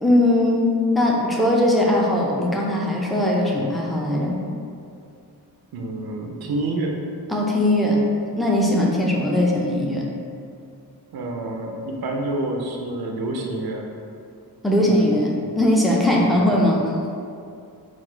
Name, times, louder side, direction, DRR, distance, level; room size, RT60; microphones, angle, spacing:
voice 1, 0.0-4.4 7.3-8.0 8.4-10.0 14.6-16.8, left 1 dB, ahead, -3 dB, 0.5 m, -20 dB
voice 2, 5.7-6.9 11.1-13.9 14.8-15.2 16.2-16.6, right 2 dB, 70° right, 1 dB, 0.5 m, -28 dB
4.0 x 2.4 x 4.4 m, 2.5 s
wide cardioid pair, 115°, 39 cm